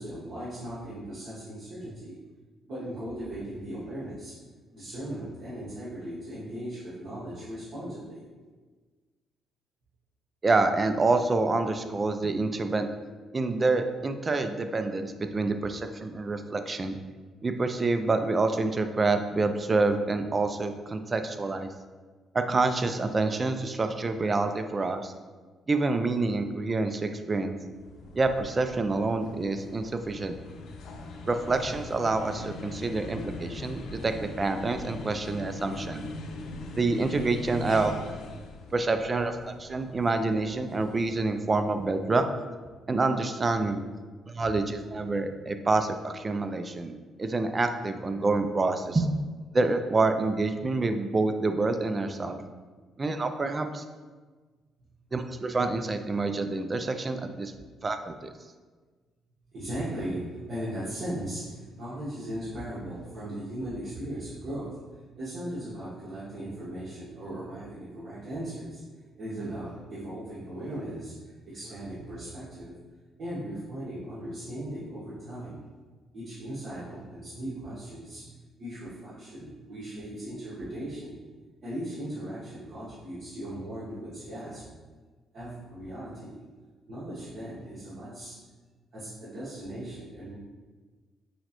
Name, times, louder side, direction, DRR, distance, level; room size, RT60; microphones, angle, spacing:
voice 1, 0.0-2.2 2.7-4.3 4.7-8.2 44.4-44.6 59.5-68.8 69.2-72.7 73.2-75.6 76.1-78.3 78.6-81.2 81.6-84.8 85.3-86.4 86.9-88.3 88.9-90.3, right 1 dB, 55° right, -11 dB, 1.2 m, -38 dB
voice 2, 10.4-12.9 13.3-17.0 17.4-21.7 22.3-25.1 25.7-27.6 28.1-30.4 31.3-36.0 36.8-37.9 38.7-42.2 42.9-43.8 44.3-46.9 47.2-49.1 49.5-52.4 53.0-53.8 55.1-57.5 57.8-58.3, right 3 dB, 25° right, 7 dB, 0.3 m, -27 dB
sound 1, 27.6-42.1, left 2 dB, 80° left, 0.4 m, -42 dB
6.2 x 2.1 x 2.9 m, 1.4 s
cardioid pair, 115°, 0 cm